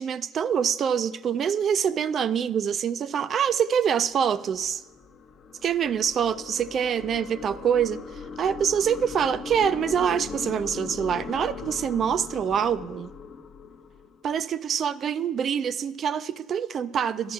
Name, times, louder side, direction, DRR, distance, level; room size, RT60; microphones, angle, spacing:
voice 1, 0.0-4.8 5.6-8.0 8.4-13.1 14.2-17.3, right 8 dB, 45° right, 15 dB, 0.3 m, -25 dB
sound 1, 3.9-14.5, left 6 dB, 50° left, 0.6 m, -40 dB
12.5 x 10.0 x 2.4 m, 1.2 s
supercardioid pair, 95°, 0 cm